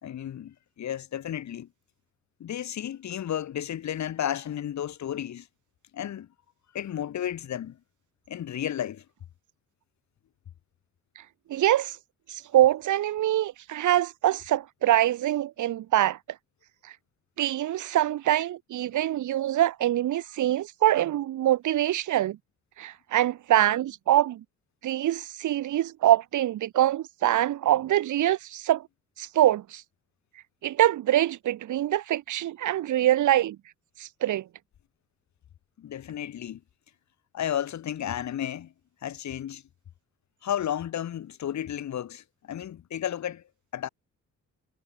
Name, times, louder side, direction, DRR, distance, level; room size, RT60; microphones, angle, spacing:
voice 1, 0.0-1.7 2.4-5.5 5.9-6.3 6.7-7.8 8.3-9.0 35.8-36.6 37.3-38.7 39.0-39.6 40.4-43.4 43.7-43.9, left 10 dB, 65° left, 5.7 m, -33 dB
voice 2, 11.5-12.0 12.3-16.2 17.4-22.4 22.8-24.4 24.8-28.9 29.2-29.8 30.6-33.6 34.0-34.5, right 13 dB, 75° right, 3.1 m, -24 dB
cardioid pair, 90°, 30 cm